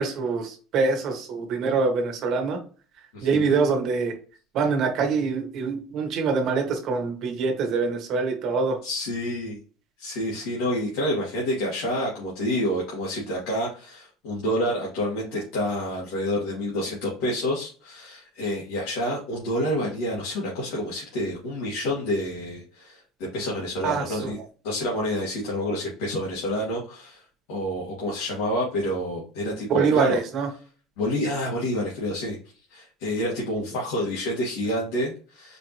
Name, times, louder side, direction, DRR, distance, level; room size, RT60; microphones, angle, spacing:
voice 1, 0.0-2.6 3.2-4.1 4.5-8.8 23.8-24.3 29.7-30.5, right 4 dB, 50° right, 4 dB, 1.2 m, -24 dB
voice 2, 3.1-3.6 8.8-9.6 10.0-23.0 23.3-24.4 24.6-27.2 27.5-30.2 31.0-32.4 32.7-35.6, equal, 85° left, -4 dB, 1.8 m, -28 dB
4.8 x 2.7 x 3.1 m, 0.38 s
cardioid pair, 140°, 0 cm